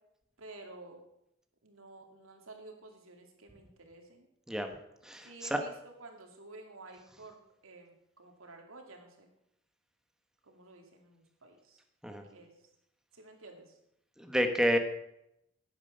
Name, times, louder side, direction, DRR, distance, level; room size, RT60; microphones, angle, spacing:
voice 1, 0.4-1.0 1.6-4.3 5.2-5.7 6.0-7.4 7.6-9.3 10.4-11.8 12.3-12.5 13.1-13.8, right 2 dB, 80° right, 3 dB, 2.5 m, -52 dB
voice 2, 5.0-5.6 12.0-12.2 14.2-14.8, equal, 5° right, 5 dB, 1.2 m, -29 dB
10.5 x 9.8 x 6.8 m, 0.81 s
head